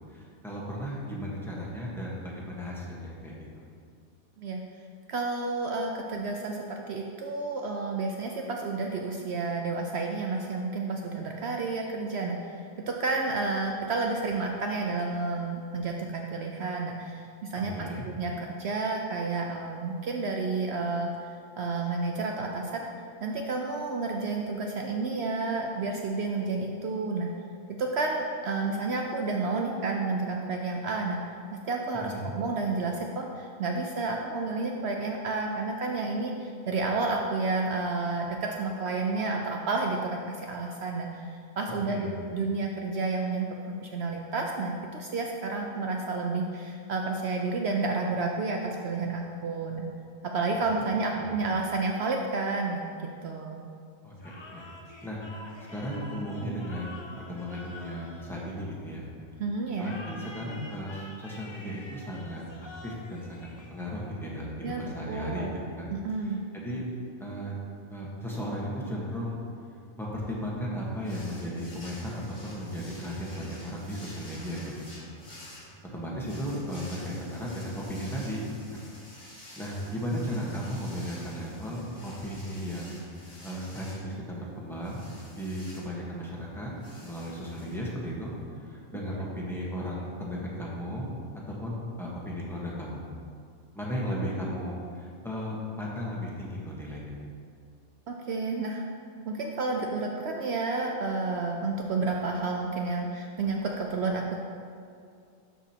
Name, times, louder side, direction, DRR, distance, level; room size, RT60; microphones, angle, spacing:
voice 1, 0.1-3.3 17.6-18.1 31.9-32.3 41.9-42.1 51.1-51.3 54.0-54.6 55.0-59.0 59.8-62.4 62.8-65.5 65.8-65.9 66.2-66.8 67.2-67.6 67.9-69.4 70.0-75.1 75.5-75.6 75.9-78.4 78.7-78.8 79.6-85.1 85.4-86.7 87.0-88.3 88.7-91.1 91.6-93.0 93.7-97.1, equal, ahead, -5 dB, 1.1 m, -35 dB
voice 2, 5.1-21.1 21.6-22.9 23.2-27.3 27.8-31.2 31.6-49.9 50.3-53.6 59.4-59.9 64.6-65.5 65.9-66.4 98.1-98.9 99.3-104.3, right 3 dB, 65° right, 1 dB, 0.7 m, -30 dB
sound 1, 54.2-59.0 59.7-64.2, left 2 dB, 35° left, 0.4 m, -48 dB
sound 2, 71.0-88.4, left 1 dB, 60° left, 2.2 m, -50 dB
12.0 x 4.9 x 2.9 m, 2.3 s
omnidirectional pair, 1.4 m